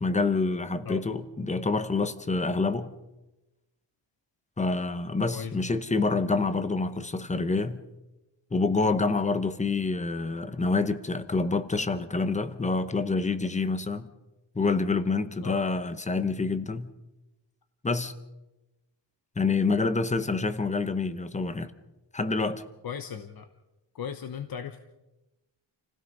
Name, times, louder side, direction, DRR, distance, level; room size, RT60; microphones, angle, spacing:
voice 1, 0.0-2.9 4.6-7.8 8.5-14.1 14.5-16.9 17.8-18.1 19.4-21.7 22.1-22.6, left 3 dB, 15° left, 0.9 m, -27 dB
voice 2, 15.4-15.7 22.8-23.5 23.9-24.8, left 7 dB, 50° left, 1.1 m, -37 dB
29.0 x 16.5 x 5.4 m
wide cardioid pair, 175°, 48 cm